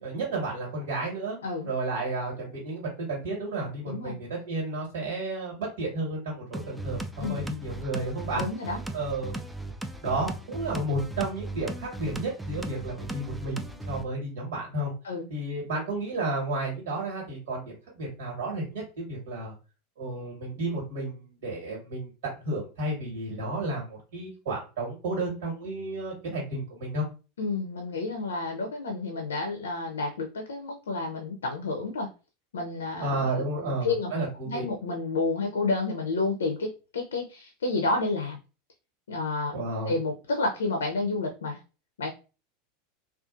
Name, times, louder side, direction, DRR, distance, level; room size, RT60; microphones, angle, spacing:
voice 1, 0.0-1.4 1.6-8.4 8.9-9.4 10.0-14.9 15.3-19.5 20.0-22.1 22.4-27.0 33.0-34.6 39.5-39.9, right 2 dB, 70° right, -3 dB, 1.4 m, -32 dB
voice 2, 3.8-4.2 7.2-7.5 8.3-8.8 15.0-15.3 27.4-32.1 32.5-34.1 34.4-38.4 39.1-39.5 39.9-41.6 42.0-42.1, left 3 dB, 80° left, 3 dB, 0.5 m, -30 dB
sound 1, 6.5-14.0, right 2 dB, 5° right, 0.4 m, -37 dB
2.5 x 2.4 x 2.5 m, 0.33 s
hypercardioid pair, 85°, 0 cm